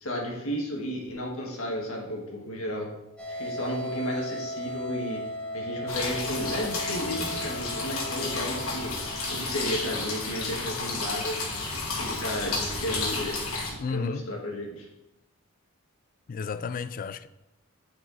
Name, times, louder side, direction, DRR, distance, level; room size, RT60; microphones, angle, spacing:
voice 1, 0.0-2.9 3.3-5.2 5.5-9.0 9.3-11.4 12.0-13.4 13.7-14.9, equal, 75° left, 1.7 m, -33 dB
sound 1, 3.2-10.1, equal, 5° left, 1.0 m, -37 dB
sound 2, 5.9-13.7, left 3 dB, 90° left, 2.0 m, -32 dB
voice 2, 13.8-14.3 16.3-17.3, left 5 dB, 40° left, 0.3 m, -32 dB
9.2 x 4.8 x 4.1 m
head